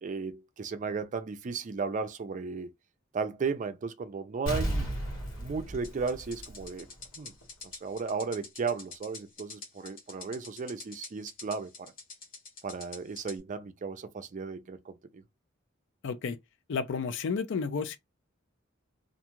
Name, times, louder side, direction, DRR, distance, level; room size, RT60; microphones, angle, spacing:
voice 1, 0.0-2.7 3.1-4.9 5.4-6.9 7.2-7.3 7.8-11.9 12.6-15.2, right 5 dB, 40° right, 0.4 m, -35 dB
Explosion, 4.5-7.1 7.4-7.5, right 1 dB, 80° left, 1.4 m, -34 dB
sound 1, 5.8-13.4, left 4 dB, 45° left, 0.9 m, -46 dB
voice 2, 16.0-16.4 16.7-18.0, left 5 dB, 60° left, 0.4 m, -31 dB
2.5 x 2.3 x 2.9 m
head